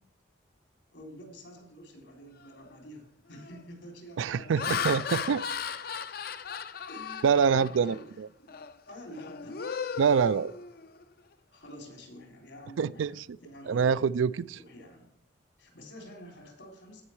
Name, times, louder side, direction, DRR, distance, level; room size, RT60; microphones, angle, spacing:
voice 1, 0.9-4.3 6.9-9.6 11.5-14.0 14.5-15.1 15.6-17.0, equal, 80° left, 3.5 m, -48 dB
Laughter, 2.5-2.7 3.3-3.6 4.2-8.0 8.5-8.7 9.1-11.0, left 7 dB, 50° left, 0.5 m, -36 dB
voice 2, 4.2-5.4 7.2-7.9 10.0-10.5 12.8-13.4 13.7-14.6, right 6 dB, 90° right, 0.4 m, -25 dB
15.5 x 5.5 x 4.6 m
head